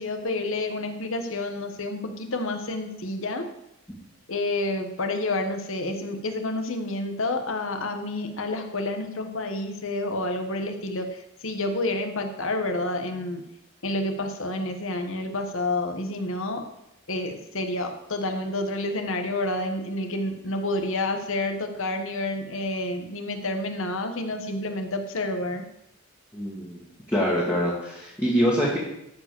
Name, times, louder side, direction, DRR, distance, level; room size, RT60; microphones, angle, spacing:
voice 1, 0.0-3.5 4.3-13.4 13.8-16.6 17.1-25.6, left 2 dB, 60° left, 5 dB, 1.4 m, -29 dB
voice 2, 26.3-26.9 27.1-28.8, equal, 10° left, -6 dB, 2.1 m, -24 dB
13.0 x 5.1 x 6.9 m, 0.83 s
head